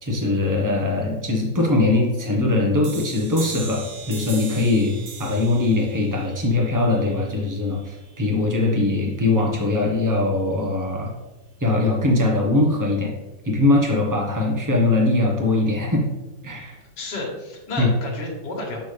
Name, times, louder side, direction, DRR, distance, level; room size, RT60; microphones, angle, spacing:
voice 1, 0.0-4.9 5.2-11.1 11.6-13.1 13.4-16.0 16.4-16.8 17.8-17.9, left 2 dB, 15° right, -1 dB, 0.9 m, -21 dB
sound 1, 2.8-8.2, right 4 dB, 75° right, 0.4 m, -39 dB
voice 2, 17.0-18.8, left 2 dB, 65° left, -1 dB, 2.2 m, -31 dB
6.9 x 6.1 x 3.3 m, 1.1 s
omnidirectional pair, 2.1 m